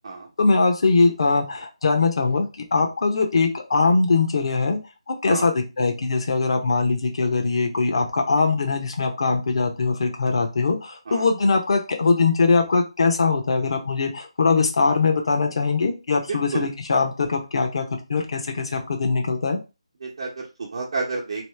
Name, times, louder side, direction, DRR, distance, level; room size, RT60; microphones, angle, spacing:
voice 1, 0.4-4.8 5.1-17.8 18.1-19.6, left 4 dB, 55° left, 3 dB, 0.9 m, -21 dB
voice 2, 16.3-16.7 20.0-21.5, right 3 dB, 50° right, -5 dB, 0.9 m, -30 dB
3.0 x 2.7 x 3.3 m, 0.28 s
figure-of-eight pair, 165°, 3 cm